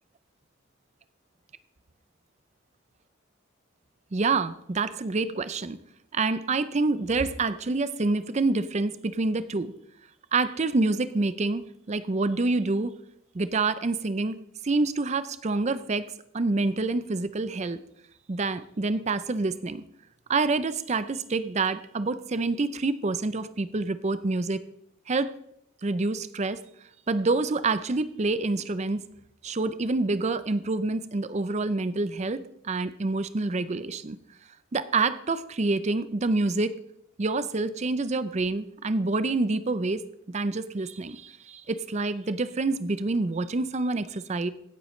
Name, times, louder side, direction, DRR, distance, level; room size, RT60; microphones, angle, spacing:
voice 1, 4.1-5.8 6.1-9.7 10.3-12.9 13.3-16.1 16.3-17.8 18.3-19.8 20.3-24.6 25.1-25.3 25.8-26.6 27.1-29.1 29.4-32.4 32.6-34.2 34.7-36.7 37.2-40.0 40.3-44.5, right 3 dB, 35° right, 14 dB, 0.5 m, -27 dB
16.0 x 8.0 x 3.2 m, 0.74 s
head